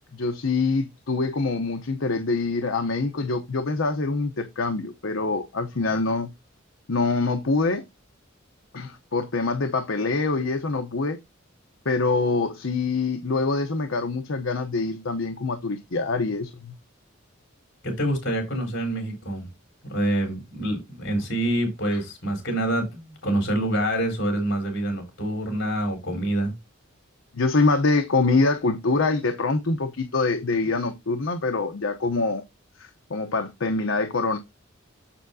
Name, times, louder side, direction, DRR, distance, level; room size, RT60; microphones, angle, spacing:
voice 1, 0.1-6.3 6.9-7.9 8.7-11.2 11.8-16.7 27.3-32.4 32.8-34.4, left 3 dB, 75° left, 0.8 m, -25 dB
voice 2, 17.8-19.4 19.9-26.5, right 1 dB, 60° left, 4.4 m, -26 dB
7.1 x 7.0 x 2.7 m
head